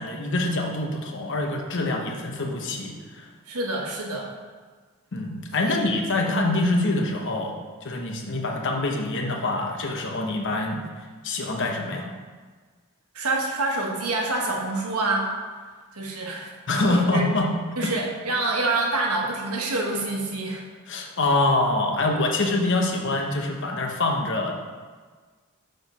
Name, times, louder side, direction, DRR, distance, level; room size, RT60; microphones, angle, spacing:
voice 1, 0.0-3.3 5.1-10.8 11.2-12.1 16.7-17.5 17.8-17.9 20.9-24.5, left 2 dB, 55° left, 2 dB, 0.9 m, -25 dB
voice 2, 3.4-4.3 5.6-5.8 6.3-6.5 13.1-15.3 15.9-17.3 17.8-20.6 21.0-21.1, right 2 dB, 85° right, 0 dB, 1.2 m, -27 dB
6.5 x 4.4 x 5.4 m, 1.5 s
head